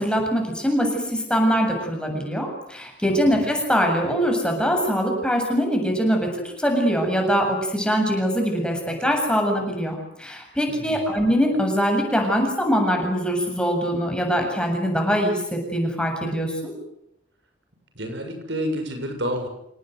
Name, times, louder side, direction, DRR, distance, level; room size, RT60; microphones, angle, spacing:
voice 1, 0.0-6.3 6.6-16.7, equal, 5° left, 2 dB, 7.7 m, -23 dB
voice 2, 3.1-3.5 10.7-11.2 18.0-19.5, equal, 70° right, 5 dB, 6.9 m, -30 dB
28.5 x 19.5 x 9.4 m, 0.78 s
head